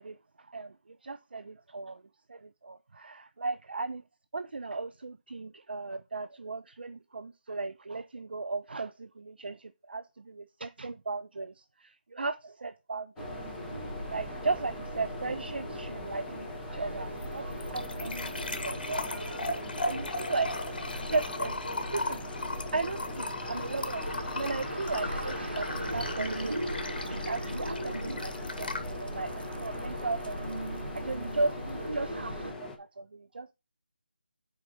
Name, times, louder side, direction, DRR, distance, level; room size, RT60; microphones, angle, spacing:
voice 1, 0.0-2.0 2.3-4.0 4.3-13.4 14.1-19.1 19.4-20.5 21.1-21.7 21.9-30.4 30.8-33.5, right 3 dB, 70° right, 0.5 m, -36 dB
sound 1, 13.2-32.8, left 3 dB, 5° left, 0.6 m, -43 dB
sound 2, 13.2-32.5, right 1 dB, 90° right, 3.1 m, -38 dB
sound 3, 16.9-31.9, left 2 dB, 60° left, 1.4 m, -38 dB
7.0 x 4.8 x 5.5 m
figure-of-eight pair, 165°, 6 cm